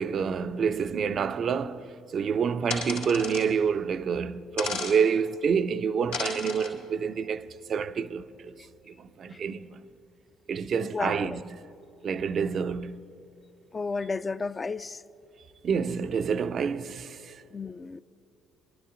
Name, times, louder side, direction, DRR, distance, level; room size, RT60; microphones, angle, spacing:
voice 1, 0.0-9.8 10.5-11.4 12.0-13.0 15.6-17.4, right 6 dB, 45° right, 0.4 m, -28 dB
sound 1, 2.7-3.5 4.6-5.0 6.1-6.7, left 4 dB, 85° left, 2.3 m, -33 dB
voice 2, 10.8-11.4 13.7-15.0 17.5-18.0, left 4 dB, 30° left, 0.3 m, -33 dB
24.0 x 12.0 x 2.5 m
figure-of-eight pair, 50°, 0 cm